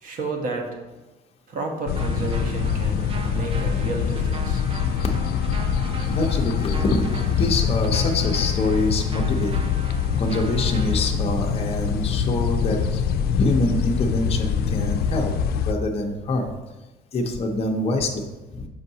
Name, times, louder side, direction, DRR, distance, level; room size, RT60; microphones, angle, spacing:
voice 1, 0.0-0.7 1.5-4.6, right 2 dB, 55° right, 2 dB, 1.2 m, -31 dB
sound 1, 1.9-15.7, left 7 dB, 65° left, 0.4 m, -24 dB
sound 2, 2.0-11.1, right 3 dB, 35° right, 0.5 m, -40 dB
voice 2, 6.1-7.1 7.4-9.5 10.2-13.0 13.4-15.3 15.6-16.5 17.1-18.2 18.5-18.7, left 2 dB, 35° left, 1 dB, 0.8 m, -25 dB
6.6 x 5.4 x 2.8 m, 1.1 s
cardioid pair, 110°, 17 cm